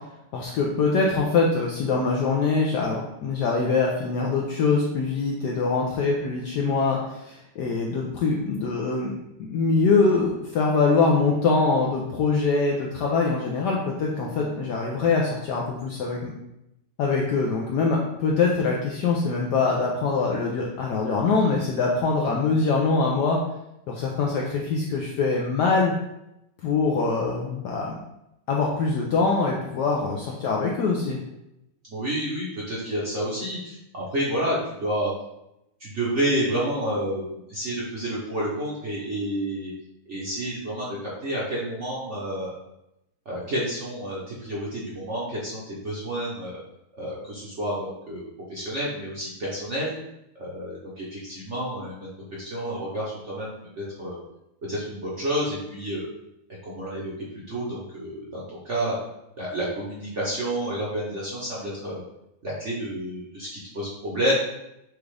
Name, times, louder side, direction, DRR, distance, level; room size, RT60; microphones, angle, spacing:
voice 1, 0.3-9.1 9.4-16.3 17.0-23.4 23.9-25.9 26.6-28.0 28.5-31.2, left 4 dB, 75° left, -2 dB, 1.0 m, -23 dB
voice 2, 31.9-35.1 35.8-37.2 37.5-39.7 40.1-42.5 43.2-46.5 47.0-49.9 50.4-52.1 52.4-54.2 54.7-56.1 56.6-57.1 57.5-59.0 59.4-62.0 62.4-63.5 63.7-64.3, right 1 dB, 50° right, -7 dB, 0.9 m, -29 dB
6.3 x 2.4 x 3.3 m, 0.86 s
omnidirectional pair, 2.3 m